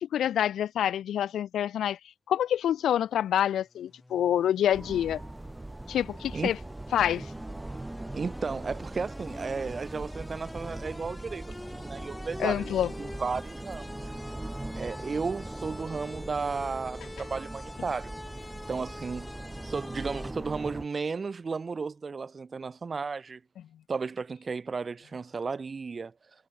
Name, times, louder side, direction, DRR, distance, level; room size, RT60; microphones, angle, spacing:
voice 1, 0.0-2.0 2.3-5.2 5.9-6.6 6.9-7.3 12.4-12.9, left 10 dB, 70° left, 0.5 m, -27 dB
sound 1, 3.6-20.3, left 2 dB, 10° left, 6.9 m, -47 dB
sound 2, 4.7-20.9, right 2 dB, 10° right, 7.1 m, -40 dB
voice 2, 8.1-12.7 13.0-14.1 14.8-18.1 18.7-19.3 19.6-23.4 23.9-26.1, right 4 dB, 35° right, 7.3 m, -34 dB
cardioid pair, 90°, 0 cm